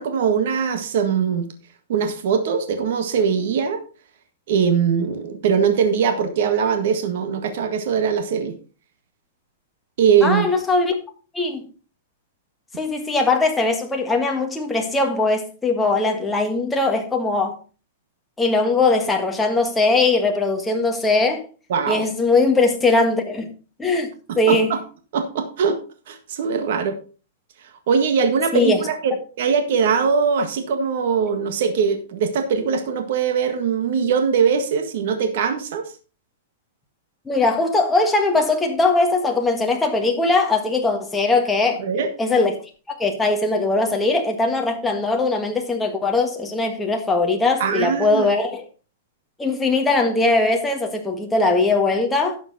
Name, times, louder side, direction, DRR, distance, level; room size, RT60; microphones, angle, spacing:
voice 1, 0.0-1.5 1.9-3.8 4.5-8.5 10.0-10.5 21.7-22.1 24.3-24.8 25.1-25.8 26.1-27.0 27.9-35.8 41.8-42.1 47.6-48.3, right 6 dB, 60° right, 1.6 m, -21 dB
voice 2, 10.2-11.0 11.3-11.6 12.8-17.6 18.4-21.4 21.9-23.5 23.8-24.7 28.5-28.8 37.2-41.8 42.2-42.5 42.9-48.6 49.4-52.4, left 3 dB, 5° left, 1.6 m, -20 dB
11.5 x 7.1 x 4.1 m
hypercardioid pair, 160°, 0 cm